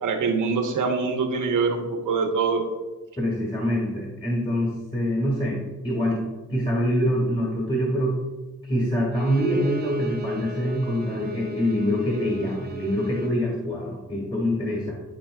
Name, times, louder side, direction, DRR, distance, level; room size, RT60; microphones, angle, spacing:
voice 1, 0.0-2.6, right 4 dB, 90° right, 3 dB, 1.1 m, -24 dB
voice 2, 3.2-6.2 6.5-8.1 8.6-14.9, equal, 15° left, -2 dB, 1.9 m, -25 dB
Bowed string instrument, 9.1-13.4, right 2 dB, 35° right, 1.0 m, -35 dB
12.0 x 4.4 x 2.3 m, 1.2 s
cardioid pair, 60°, 30 cm